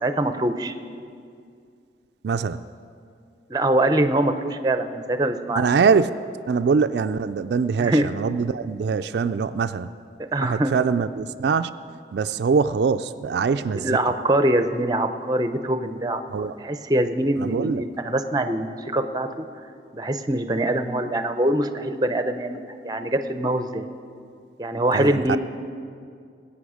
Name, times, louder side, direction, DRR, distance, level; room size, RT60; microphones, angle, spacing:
voice 1, 0.0-0.8 3.5-5.6 7.8-8.1 10.3-10.7 13.7-19.5 19.9-23.9 24.6-25.4, right 1 dB, 20° right, 9 dB, 0.6 m, -23 dB
voice 2, 2.2-2.6 5.5-6.1 6.5-9.9 10.4-11.7 12.1-14.0 16.3-16.5 17.4-17.8 24.9-25.4, right 5 dB, 70° right, 10 dB, 0.3 m, -23 dB
20.0 x 8.5 x 5.0 m, 2.4 s
head